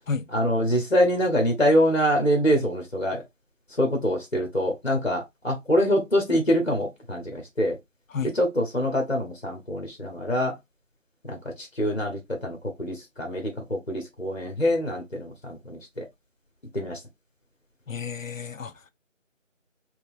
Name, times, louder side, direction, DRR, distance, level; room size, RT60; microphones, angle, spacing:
voice 1, 0.3-3.2 3.8-7.8 8.3-10.6 11.2-16.1 16.7-17.0, equal, 55° left, 1.1 m, -25 dB
voice 2, 17.9-18.7, left 6 dB, 80° left, 0.6 m, -31 dB
4.5 x 2.5 x 2.6 m
figure-of-eight pair, 175°, 39 cm